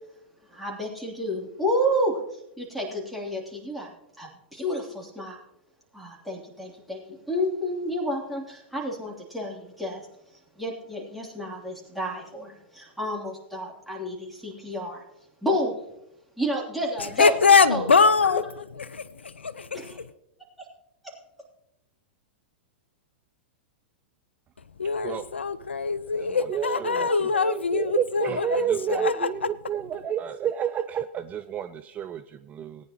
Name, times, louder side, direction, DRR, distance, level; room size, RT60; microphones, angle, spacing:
voice 1, 0.5-3.9 4.2-5.4 5.9-10.0 10.6-15.0 15.4-15.8 16.4-17.3 17.7-17.8 18.2-18.4 19.7-20.0 21.0-21.1, equal, ahead, 3.1 m, -30 dB
voice 2, 17.2-18.4 18.8-19.9 24.8-28.6 29.0-29.1, left 5 dB, 85° left, 0.5 m, -22 dB
voice 3, 26.2-32.9, right 9 dB, 25° right, 0.4 m, -30 dB
18.5 x 9.6 x 3.0 m
figure-of-eight pair, 100°, 6 cm